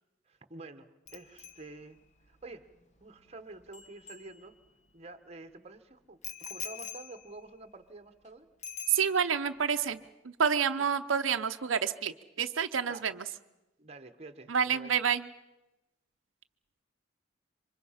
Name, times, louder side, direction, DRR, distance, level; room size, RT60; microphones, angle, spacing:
voice 1, 0.3-2.0 2.3-2.7 3.0-4.5 4.9-8.5 12.9-13.0 13.8-14.9, right 2 dB, 35° right, 8 dB, 1.2 m, -48 dB
Bicycle bell, 1.1-4.9 6.2-8.3 8.6-9.5 9.8-10.1, left 6 dB, 35° left, 1.2 m, -46 dB
voice 2, 8.9-13.3 14.5-15.3, right 7 dB, 90° right, 8 dB, 0.7 m, -29 dB
27.0 x 24.5 x 5.7 m, 1.0 s
head